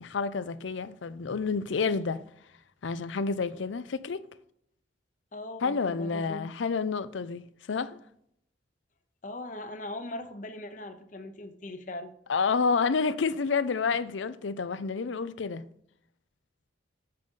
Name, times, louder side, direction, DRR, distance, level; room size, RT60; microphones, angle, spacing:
voice 1, 0.0-2.2 2.8-4.2 5.6-8.0 12.3-15.7, left 5 dB, 75° left, 0.5 m, -29 dB
voice 2, 5.3-6.7 9.2-12.1, left 1 dB, 40° left, 0.8 m, -40 dB
7.6 x 7.3 x 3.8 m
head